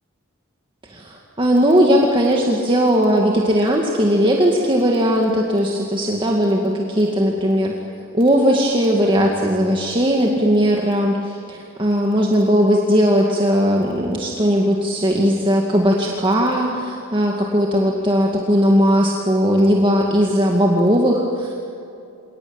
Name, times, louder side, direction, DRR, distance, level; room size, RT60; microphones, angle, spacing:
voice 1, 0.9-7.7 8.1-21.6, equal, 25° right, -1 dB, 2.2 m, -18 dB
27.0 x 19.0 x 8.9 m, 2.7 s
head